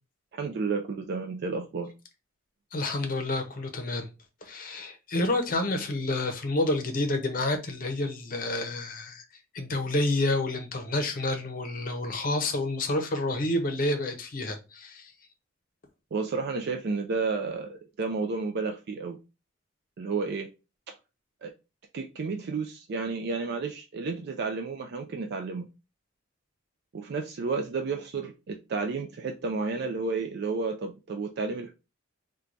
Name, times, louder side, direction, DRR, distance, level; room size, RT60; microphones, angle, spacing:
voice 1, 0.3-1.9 16.1-19.2 20.0-20.5 21.4-21.5 21.9-25.7 26.9-31.7, right 4 dB, 55° right, 0.4 m, -31 dB
voice 2, 2.7-4.1 4.4-9.2 9.5-15.1, left 2 dB, 45° left, 0.7 m, -29 dB
4.4 x 2.2 x 2.5 m
head